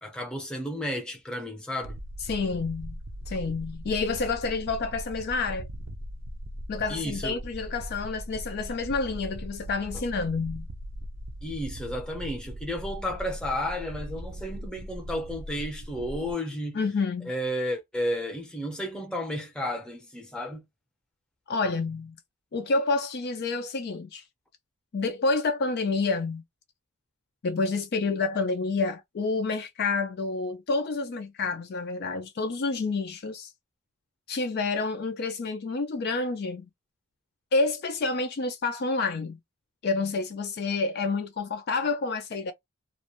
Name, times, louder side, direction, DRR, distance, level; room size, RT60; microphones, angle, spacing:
voice 1, 0.0-2.0 6.9-7.4 9.9-10.0 11.4-16.8 17.2-20.6, equal, 5° left, 0.7 m, -32 dB
sound 1, 1.8-16.3, equal, 55° right, 0.5 m, -39 dB
voice 2, 2.3-3.0 3.3-5.7 6.7-10.7 16.7-17.3 21.5-22.2 22.5-24.2 24.9-26.4 27.4-33.5 34.3-36.7 37.5-39.4 39.8-42.5, left 3 dB, 45° left, 0.3 m, -28 dB
2.4 x 2.1 x 2.9 m
head